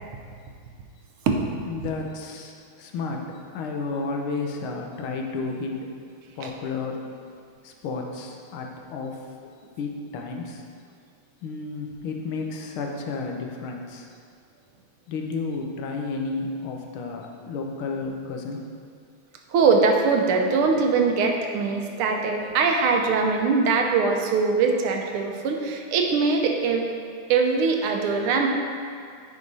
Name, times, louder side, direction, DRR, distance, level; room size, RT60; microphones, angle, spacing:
voice 1, 1.6-2.5 2.8-3.3 3.5-5.8 6.4-7.0 7.6-9.2 9.8-10.6 11.4-14.1 15.1-18.6, left 4 dB, 80° left, 2 dB, 1.6 m, -32 dB
voice 2, 19.5-26.9 27.3-28.5, right 4 dB, 85° right, 2 dB, 1.6 m, -22 dB
9.3 x 5.0 x 4.0 m, 2.2 s
omnidirectional pair, 2.4 m